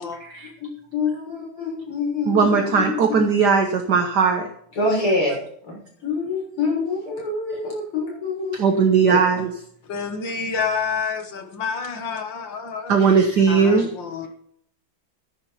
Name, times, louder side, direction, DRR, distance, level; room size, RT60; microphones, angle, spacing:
voice 1, 0.6-3.3 4.8-5.4 5.7-8.6, left 3 dB, 85° left, 7.6 m, -26 dB
voice 2, 2.3-4.5 8.5-9.5 12.9-13.9, right 5 dB, 55° right, 1.6 m, -18 dB
voice 3, 9.8-13.0 13.5-14.3, left 5 dB, 60° left, 2.3 m, -28 dB
13.5 x 10.5 x 4.3 m
omnidirectional pair, 2.4 m